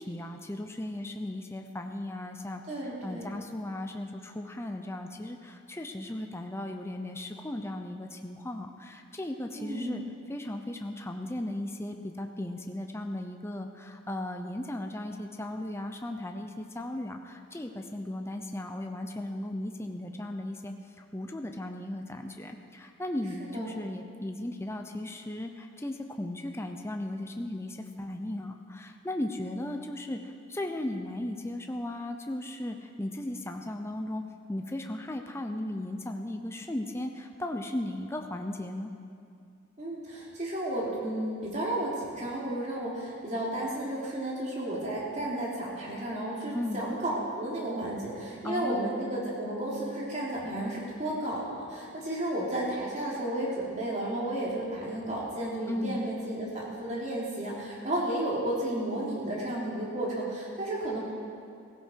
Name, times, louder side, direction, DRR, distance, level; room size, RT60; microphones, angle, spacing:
voice 1, 0.0-2.6 3.0-10.0 10.3-20.7 21.1-34.2 34.5-38.9 46.5-46.8 48.4-49.0 55.7-56.0, left 1 dB, 15° left, 4 dB, 0.7 m, -36 dB
voice 2, 2.7-3.3 9.6-10.0 23.4-23.7 39.8-61.0, right 1 dB, 35° right, -5 dB, 3.3 m, -33 dB
16.5 x 16.0 x 4.6 m, 2.4 s
head